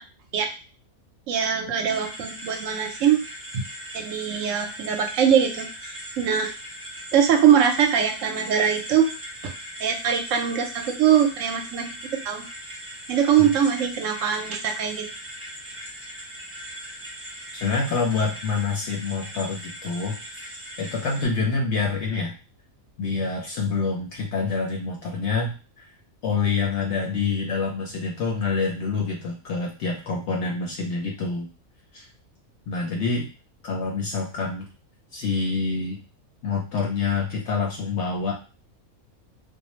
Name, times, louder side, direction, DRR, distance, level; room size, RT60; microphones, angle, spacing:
voice 1, 1.3-3.3 3.5-3.6 3.9-6.5 7.1-9.1 9.8-11.9 12.2-12.5 13.1-15.1, right 8 dB, 70° right, 4 dB, 0.9 m, -22 dB
sound 1, 1.9-21.3, equal, 15° right, 0.4 m, -39 dB
voice 2, 17.6-20.2 20.8-22.3 23.0-25.8 26.2-31.5 31.9-32.1 32.7-33.3 33.6-34.7 35.1-36.0 36.4-38.3, left 4 dB, 65° left, 0 dB, 0.7 m, -26 dB
2.5 x 2.0 x 2.9 m, 0.33 s
omnidirectional pair, 1.5 m